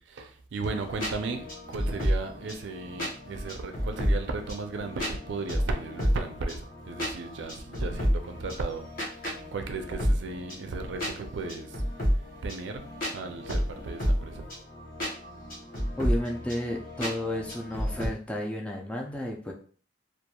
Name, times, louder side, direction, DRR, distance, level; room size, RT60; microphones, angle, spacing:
voice 1, 0.0-11.8 12.4-14.4, right 3 dB, 70° right, 0.4 m, -35 dB
sound 1, 0.7-18.1, equal, 50° left, 0.9 m, -31 dB
voice 2, 16.0-19.5, left 1 dB, 5° left, 0.3 m, -32 dB
2.9 x 2.4 x 2.2 m
head